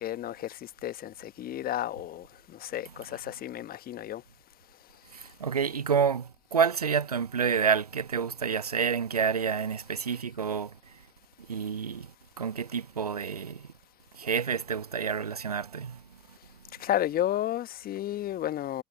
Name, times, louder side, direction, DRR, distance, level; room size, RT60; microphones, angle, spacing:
voice 1, 0.0-4.2 16.8-18.8, left 12 dB, 50° left, 1.2 m, -32 dB
voice 2, 5.1-11.0 11.5-13.7 14.1-16.0, right 6 dB, 90° right, 0.5 m, -29 dB
figure-of-eight pair, 50°, 19 cm